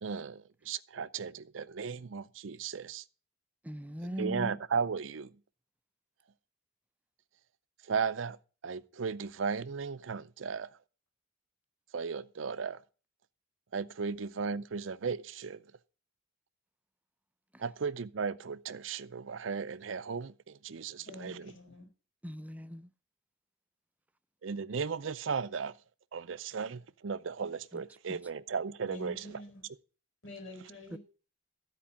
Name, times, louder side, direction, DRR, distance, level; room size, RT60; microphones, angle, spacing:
voice 1, 0.0-3.0 4.2-5.3 7.9-8.4 8.6-10.7 11.9-12.8 13.7-15.6 17.6-21.5 24.4-25.7 26.1-29.4, right 5 dB, 70° right, 0.5 m, -36 dB
voice 2, 3.6-4.6 17.5-17.6 22.2-22.9 27.7-27.8 28.1-28.2 30.9-31.0, equal, 10° right, 0.5 m, -39 dB
voice 3, 21.0-21.9 28.8-29.6 30.2-31.0, left 1 dB, 75° left, 4.6 m, -47 dB
13.0 x 4.6 x 8.6 m
head